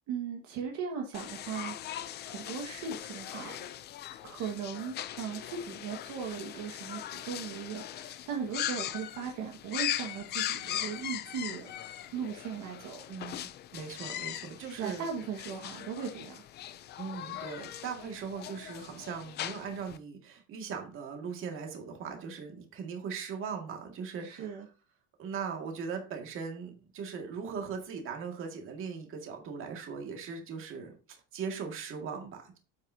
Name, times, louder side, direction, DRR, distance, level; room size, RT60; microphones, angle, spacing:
voice 1, 0.1-3.7 4.2-11.7 12.1-13.0 14.7-16.4 24.2-24.7, right 6 dB, 55° right, 1 dB, 1.7 m, -38 dB
sound 1, 1.1-20.0, left 12 dB, 30° left, 0.4 m, -40 dB
voice 2, 13.1-15.1 17.0-24.5 25.2-30.9 31.3-32.6, right 6 dB, 35° right, 2 dB, 2.1 m, -39 dB
9.3 x 7.8 x 2.8 m, 0.34 s
cardioid pair, 165°, 35 cm